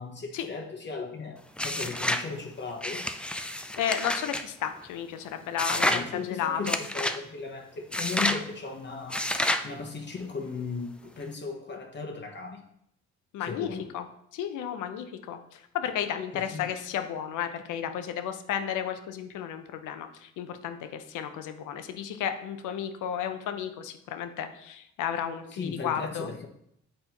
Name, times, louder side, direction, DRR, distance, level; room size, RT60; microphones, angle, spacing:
voice 1, 0.0-3.1 5.8-9.3 9.6-12.6 13.4-13.9 16.3-16.7 25.5-26.5, left 4 dB, 35° left, 1 dB, 0.9 m, -37 dB
sound 1, 1.6-2.3 2.8-4.4 5.6-6.1 6.7-7.2 7.9-8.4 9.1-9.7, left 1 dB, 5° left, 0.3 m, -29 dB
voice 2, 3.7-5.9 6.2-6.8 13.3-14.0 14.3-26.3, left 9 dB, 85° left, 8 dB, 0.7 m, -33 dB
7.7 x 4.2 x 2.9 m, 0.75 s
cardioid pair, 90°, 30 cm